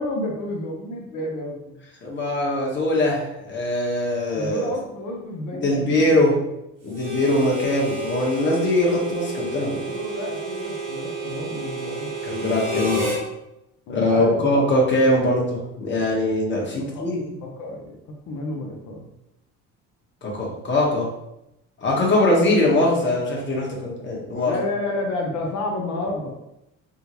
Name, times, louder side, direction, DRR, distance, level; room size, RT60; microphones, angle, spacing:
voice 1, 0.0-1.8 4.3-6.2 9.6-12.1 13.9-14.5 16.9-17.1 17.4-17.9 18.3-19.1 24.5-26.3, left 2 dB, 65° left, 0 dB, 0.7 m, -30 dB
voice 2, 2.0-4.7 5.6-6.3 6.8-9.8 12.2-13.1 13.9-17.3 20.2-21.1 21.8-24.5, left 1 dB, 35° left, -3 dB, 1.2 m, -22 dB
Harmonica, 6.9-13.2, right 2 dB, 85° right, 1.4 m, -30 dB
3.6 x 2.2 x 2.9 m, 0.87 s
supercardioid pair, 90°, 31 cm